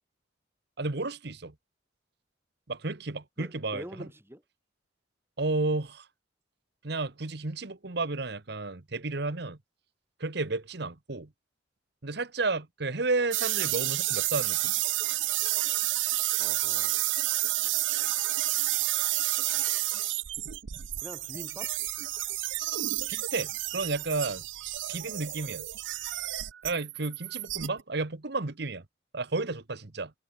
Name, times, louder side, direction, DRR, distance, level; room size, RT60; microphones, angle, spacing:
voice 1, 0.8-1.5 2.7-4.1 5.4-6.1 6.8-9.6 10.2-11.3 12.0-14.7 23.1-24.4 24.9-25.7 26.6-28.8 29.1-30.1, right 3 dB, 60° right, 1.3 m, -32 dB
voice 2, 3.4-4.4 16.4-17.0 21.0-21.8, equal, 15° right, 4.6 m, -44 dB
sound 1, 13.3-27.8, right 17 dB, 80° right, 0.6 m, -30 dB
head